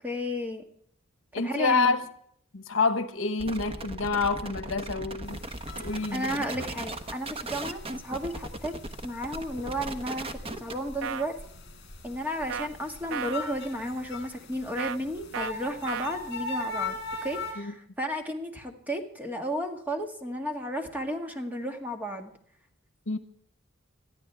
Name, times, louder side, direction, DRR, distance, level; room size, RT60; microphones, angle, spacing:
voice 1, 0.0-0.6 1.4-2.0 6.1-8.8 9.0-11.4 12.0-22.3, equal, 10° right, 1.8 m, -33 dB
voice 2, 1.3-2.0 2.5-5.4 5.8-6.3 17.6-17.7 23.1-23.2, left 4 dB, 75° left, 1.1 m, -27 dB
sound 1, 3.4-10.9, right 2 dB, 30° right, 1.0 m, -38 dB
sound 2, 5.3-17.5, left 3 dB, 55° left, 5.1 m, -41 dB
sound 3, 11.0-11.3 12.5-12.7 13.1-13.4 14.8-15.0 15.3-15.5 15.9-16.1, right 7 dB, 75° right, 0.5 m, -33 dB
21.0 x 13.5 x 3.4 m
head